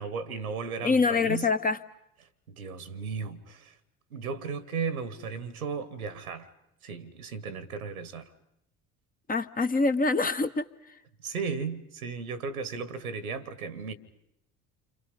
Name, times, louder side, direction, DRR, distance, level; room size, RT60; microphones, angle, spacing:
voice 1, 0.0-1.5 2.5-3.7 4.1-6.5 6.8-8.3 11.2-13.9, right 5 dB, 85° right, 1.4 m, -35 dB
voice 2, 0.8-1.8 9.3-10.7, left 4 dB, 20° left, 0.9 m, -25 dB
29.0 x 26.0 x 5.3 m
figure-of-eight pair, 60°, 42 cm